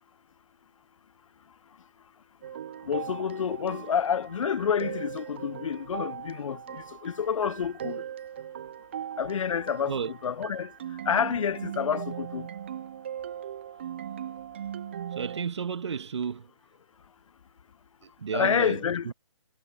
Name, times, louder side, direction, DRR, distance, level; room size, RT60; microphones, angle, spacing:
sound 1, 2.4-15.4, right 9 dB, 20° right, 0.4 m, -39 dB
voice 1, 2.9-8.0 9.2-10.7 11.1-12.5 18.3-19.1, left 7 dB, 80° left, 0.4 m, -28 dB
voice 2, 15.1-16.5 18.0-19.1, right 6 dB, 60° right, 1.5 m, -33 dB
hypercardioid pair, 155°, 17 cm